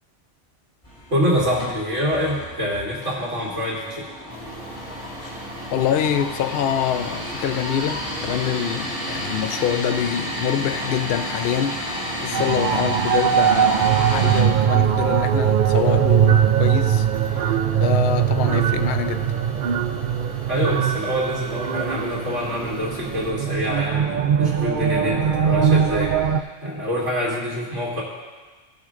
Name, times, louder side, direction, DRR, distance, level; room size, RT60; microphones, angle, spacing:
sound 1, 0.8-14.4, equal, 30° left, 3.4 m, -32 dB
voice 1, 1.1-4.1 20.5-28.0, equal, 85° right, -8 dB, 2.7 m, -26 dB
sound 2, 4.3-23.3, right 1 dB, 20° right, 1.5 m, -39 dB
voice 2, 5.7-19.4, left 9 dB, 60° left, 9 dB, 0.7 m, -25 dB
sound 3, 12.3-26.4, right 9 dB, 55° right, 0.6 m, -21 dB
18.0 x 6.5 x 3.7 m, 1.3 s
omnidirectional pair, 1.2 m